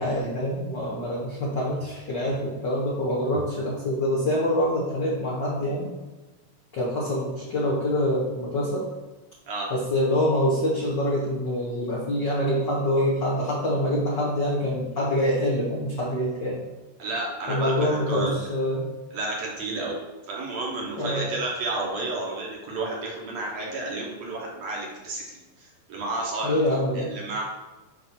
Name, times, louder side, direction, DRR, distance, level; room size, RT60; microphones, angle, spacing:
voice 1, 0.0-5.9 6.7-8.8 9.7-16.6 17.5-18.9 21.0-21.3 26.4-27.1, left 1 dB, 75° left, -5 dB, 1.0 m, -25 dB
voice 2, 17.0-18.3 19.1-19.9 20.3-26.6 26.9-27.4, right 2 dB, 60° right, -2 dB, 2.1 m, -31 dB
8.1 x 2.8 x 5.9 m, 1.1 s
omnidirectional pair, 3.8 m